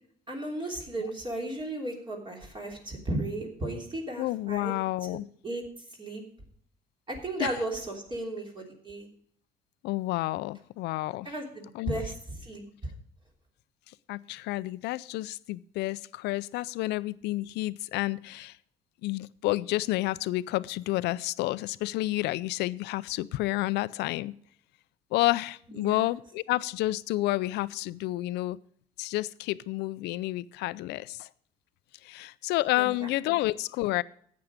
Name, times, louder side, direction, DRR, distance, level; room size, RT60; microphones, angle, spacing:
voice 1, 0.3-4.8 5.4-5.6 6.0-6.2 7.1-9.1 11.2-12.1 12.4-12.6 25.7-26.1 32.8-33.1, right 1 dB, 30° right, 0 dB, 3.2 m, -35 dB
voice 2, 4.2-5.3 7.4-7.5 9.8-11.3 11.7-12.0 14.1-18.6 19.0-24.3 25.1-28.6 29.0-31.3 32.0-34.0, left 18 dB, 85° left, 17 dB, 0.5 m, -30 dB
12.0 x 8.6 x 5.0 m, 0.63 s
cardioid pair, 110°, 17 cm